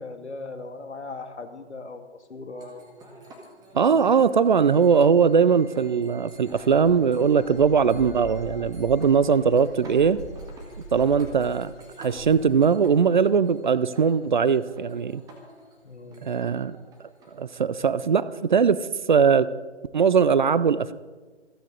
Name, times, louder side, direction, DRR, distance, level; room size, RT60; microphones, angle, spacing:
voice 1, 0.0-2.9 3.9-4.1 15.8-16.2, left 3 dB, 75° left, 7 dB, 2.0 m, -39 dB
sound 1, 2.6-18.9, right 1 dB, 10° right, 1.8 m, -49 dB
voice 2, 3.7-10.2 10.9-15.2 16.2-16.8 17.3-19.5 19.9-20.9, right 6 dB, 45° right, 17 dB, 0.5 m, -20 dB
Dog / Bird, 6.3-12.6, right 1 dB, 55° left, 4.9 m, -41 dB
27.0 x 9.1 x 3.9 m, 1.3 s
figure-of-eight pair, 135°, 35 cm